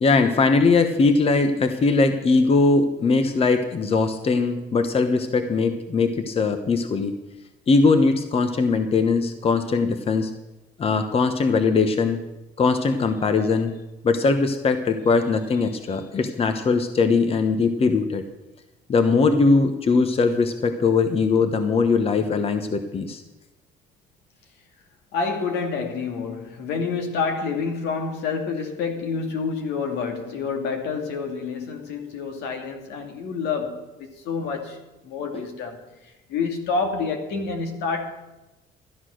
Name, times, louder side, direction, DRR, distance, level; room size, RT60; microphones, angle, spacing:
voice 1, 0.0-7.1 7.7-10.3 10.8-12.2 12.6-13.7 14.0-18.2 18.9-23.2, left 4 dB, 35° left, 1.1 m, -20 dB
voice 2, 25.1-34.8 35.0-35.8 36.0-38.1, left 5 dB, 80° left, 2.3 m, -28 dB
13.5 x 9.9 x 6.4 m
cardioid pair, 110°, 17 cm